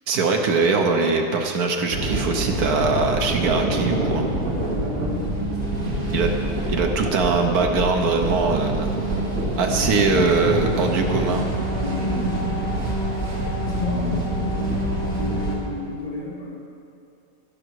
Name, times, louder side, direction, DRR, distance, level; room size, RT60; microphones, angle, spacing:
voice 1, 0.1-4.3 6.1-6.3 6.7-8.9 9.6-11.5, right 4 dB, 75° right, 4 dB, 1.4 m, -22 dB
sound 1, 1.9-15.6, right 1 dB, 60° right, 2.5 m, -25 dB
voice 2, 4.7-6.1 9.5-9.8 10.1-10.5 11.8-12.5 13.6-16.5, left 2 dB, 30° left, -8 dB, 3.6 m, -31 dB
12.0 x 11.5 x 4.7 m, 2.6 s
omnidirectional pair, 1.6 m